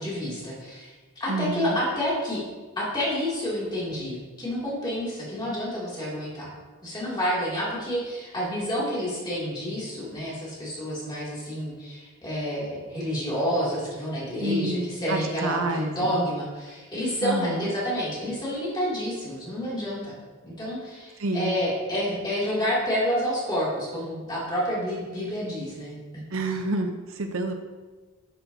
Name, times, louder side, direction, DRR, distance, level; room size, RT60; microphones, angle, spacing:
voice 1, 0.0-2.4 2.8-6.5 6.8-20.1 20.4-26.0, equal, 20° left, -7 dB, 2.5 m, -29 dB
voice 2, 1.3-1.8 14.4-16.2 17.2-17.7 21.2-21.6 26.3-27.5, right 2 dB, 65° right, 6 dB, 0.7 m, -29 dB
10.5 x 7.8 x 2.7 m, 1.3 s
head